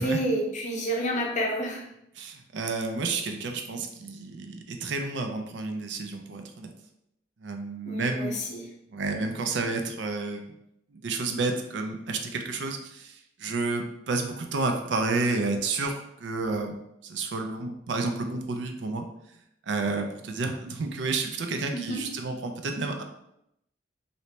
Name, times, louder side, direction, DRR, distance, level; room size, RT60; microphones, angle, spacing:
voice 1, 0.0-1.9 7.9-8.7 21.7-22.1, equal, 40° left, 0 dB, 0.6 m, -29 dB
voice 2, 2.2-6.7 7.4-8.4 8.9-10.4 10.9-16.8 17.0-19.1 19.7-23.0, right 3 dB, 75° right, 5 dB, 0.5 m, -30 dB
2.9 x 2.7 x 3.2 m, 0.79 s
head